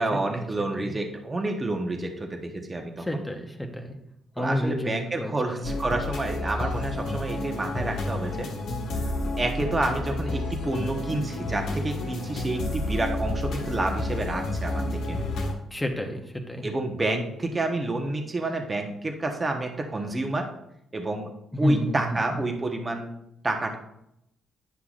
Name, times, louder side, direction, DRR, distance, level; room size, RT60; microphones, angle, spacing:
voice 1, 0.0-3.2 4.4-8.5 9.0-9.1 9.4-15.2 16.6-20.5 20.9-21.3 21.6-23.1 23.4-23.8, right 2 dB, 25° right, 4 dB, 1.0 m, -29 dB
voice 2, 3.0-3.9 4.4-5.7 15.7-16.6 21.6-22.2, left 1 dB, 10° left, 3 dB, 0.9 m, -29 dB
sound 1, 5.6-15.5, left 2 dB, 75° left, 1.4 m, -30 dB
9.8 x 5.7 x 2.5 m, 0.80 s
cardioid pair, 90°, 0 cm